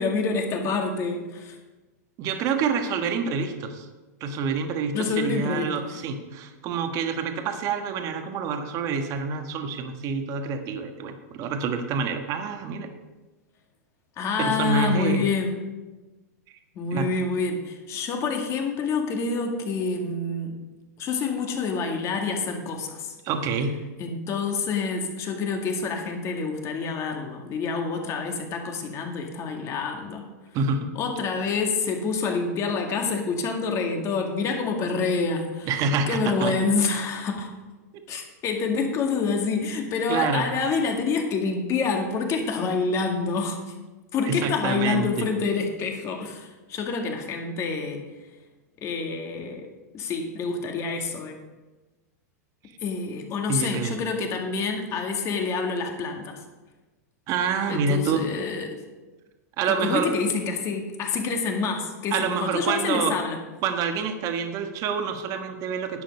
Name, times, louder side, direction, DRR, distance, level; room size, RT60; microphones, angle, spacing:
voice 1, 0.0-1.6 4.9-5.7 14.2-15.6 16.8-20.5 21.0-23.2 24.0-30.3 31.0-35.7 36.1-37.5 38.1-43.6 44.1-48.0 48.8-49.7 49.9-51.4 52.8-56.4 57.7-58.8 59.7-63.4, left 4 dB, 35° left, 3 dB, 2.0 m, -27 dB
voice 2, 2.2-3.9 4.2-12.9 14.4-15.3 16.9-17.1 23.2-23.8 30.5-30.9 35.7-36.6 40.1-40.5 44.2-45.3 53.5-53.9 57.3-58.3 59.6-60.1 62.1-63.2 63.6-66.0, right 5 dB, 40° right, 6 dB, 1.3 m, -27 dB
10.5 x 7.9 x 5.4 m, 1.2 s
hypercardioid pair, 120°, 9 cm